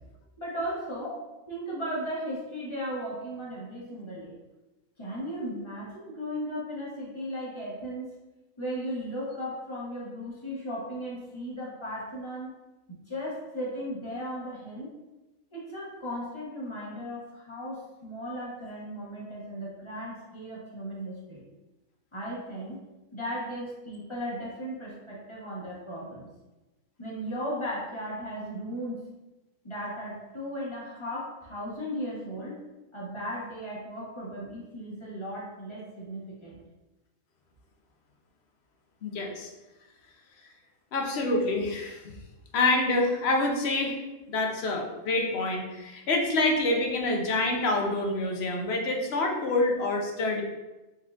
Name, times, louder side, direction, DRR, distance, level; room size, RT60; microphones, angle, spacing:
voice 1, 0.4-1.1 1.5-4.4 5.0-8.1 8.6-12.5 12.9-14.9 15.5-21.5 22.1-22.8 23.1-26.3 27.0-29.0 29.6-32.6 32.9-36.6, equal, 25° left, -5 dB, 1.0 m, -36 dB
voice 2, 39.0-39.5 40.9-42.0 42.5-43.9 44.3-50.4, left 2 dB, 60° left, 1 dB, 0.8 m, -27 dB
4.3 x 3.6 x 2.4 m, 1.1 s
omnidirectional pair, 1.4 m